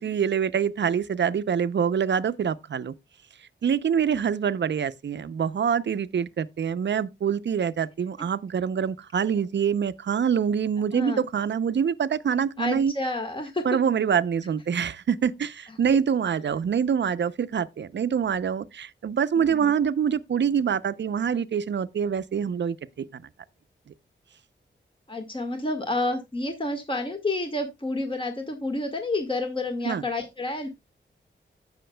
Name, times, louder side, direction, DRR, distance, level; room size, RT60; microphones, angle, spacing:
voice 1, 0.0-2.9 3.6-12.9 13.7-22.8 23.1-23.2 29.8-30.0, right 7 dB, 65° right, 0.6 m, -25 dB
voice 2, 10.9-11.2 12.6-13.8 15.7-15.8 19.4-19.7 25.1-30.7, left 2 dB, 25° left, 1.6 m, -29 dB
16.0 x 5.8 x 2.2 m
cardioid pair, 55°, 20 cm